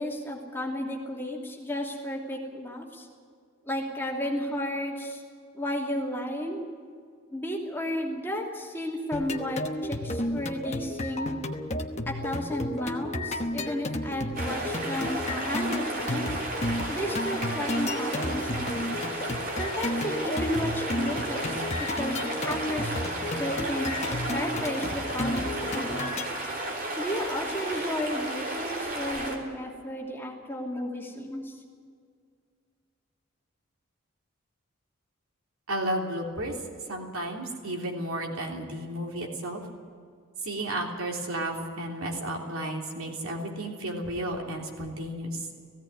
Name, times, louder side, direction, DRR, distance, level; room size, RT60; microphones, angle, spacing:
voice 1, 0.0-3.1 3.6-5.2 5.5-6.6 7.3-11.3 12.1-16.4 16.9-19.0 19.6-23.0 23.3-24.0 24.3-26.4 27.0-31.6, left 1 dB, 10° left, -2 dB, 2.8 m, -33 dB
sound 1, 9.1-26.3, left 1 dB, 30° left, 1.1 m, -32 dB
sound 2, 14.3-29.4, right 1 dB, 40° right, 3.3 m, -33 dB
voice 2, 35.7-36.5 36.9-39.6 40.5-45.4, right 1 dB, 80° right, 1 dB, 3.4 m, -33 dB
17.0 x 16.5 x 9.4 m, 2.1 s
head